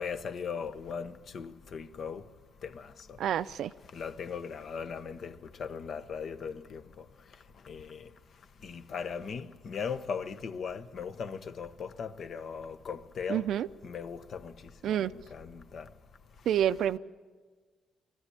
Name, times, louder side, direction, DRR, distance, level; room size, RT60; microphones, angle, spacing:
voice 1, 0.0-2.3 2.6-3.2 3.9-13.5 13.8-15.9 16.4-16.5, left 6 dB, 60° left, 1.0 m, -39 dB
voice 2, 3.2-3.7 13.3-13.7 14.8-15.1 16.5-17.0, right 10 dB, 75° right, 0.5 m, -28 dB
21.5 x 14.5 x 10.0 m
cardioid pair, 90°, 0 cm